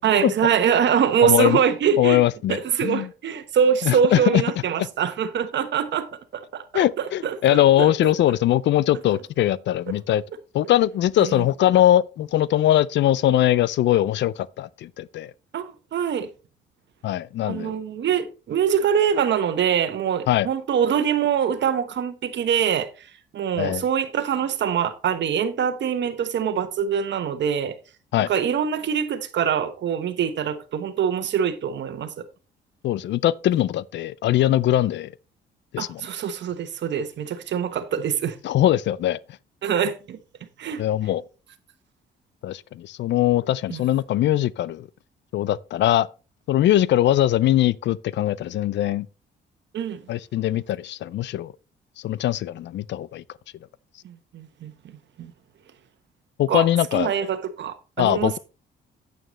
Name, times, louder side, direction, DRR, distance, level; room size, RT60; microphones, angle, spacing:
voice 1, 0.0-2.2 2.5-6.1 6.3-7.9 11.2-11.4 15.5-16.3 17.4-23.1 23.3-27.7 28.2-32.2 35.8-38.4 39.6-40.2 40.6-40.8 43.7-43.9 49.7-50.0 54.0-55.3 56.5-56.7 56.9-58.4, right 8 dB, 65° right, 1.2 m, -24 dB
voice 2, 1.2-1.6 2.0-3.1 3.8-4.4 6.7-10.2 10.5-15.3 17.0-17.7 20.3-20.5 23.6-23.8 28.1-28.3 32.8-35.1 35.7-36.0 38.4-39.2 40.8-41.2 42.4-44.9 45.3-46.1 46.5-49.1 50.1-51.5 52.0-53.2 56.4-57.1 58.0-58.4, left 13 dB, 65° left, 0.4 m, -21 dB
9.0 x 8.9 x 3.1 m
cardioid pair, 90°, 20 cm